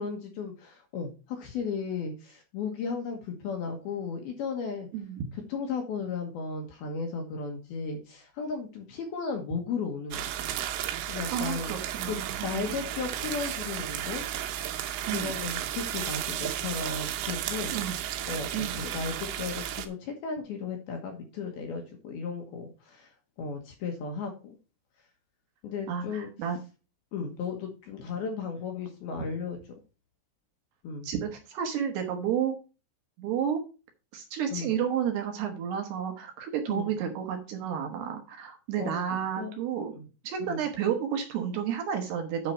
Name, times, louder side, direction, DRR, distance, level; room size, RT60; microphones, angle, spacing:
voice 1, 0.0-4.9 5.5-10.2 11.1-11.7 12.1-14.3 15.0-17.7 18.3-23.1 23.4-24.6 25.6-26.3 27.1-29.6 30.8-31.1 34.5-34.7 36.7-36.9 38.8-39.5 39.9-40.0 40.4-40.6, left 5 dB, 65° left, 3 dB, 2.7 m, -35 dB
voice 2, 4.9-5.2 11.3-12.7 15.1-15.4 17.7-18.0 18.5-18.8 25.9-26.6 31.0-32.6 33.2-33.6 34.1-39.9 40.2-42.5, right 8 dB, 70° right, 4 dB, 3.0 m, -31 dB
sound 1, 10.1-19.9, right 11 dB, 85° right, 3.6 m, -34 dB
9.6 x 5.7 x 4.4 m, 0.32 s
omnidirectional pair, 5.6 m